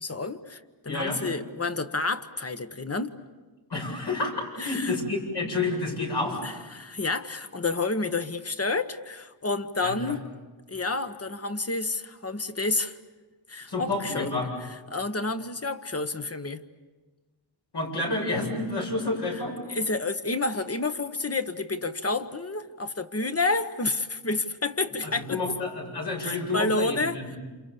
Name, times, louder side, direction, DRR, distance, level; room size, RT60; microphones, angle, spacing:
voice 1, 0.0-3.1 4.6-5.0 6.4-10.2 10.7-13.0 13.5-14.3 14.9-16.6 19.3-19.4 19.7-25.5 26.2-27.2, left 3 dB, 35° left, 9 dB, 1.2 m, -29 dB
voice 2, 0.9-1.2 3.7-6.5 9.8-10.1 13.7-14.5 17.7-19.5 25.0-27.4, left 3 dB, 75° left, 0 dB, 7.7 m, -29 dB
28.5 x 28.5 x 7.0 m, 1.3 s
wide cardioid pair, 100°, 42 cm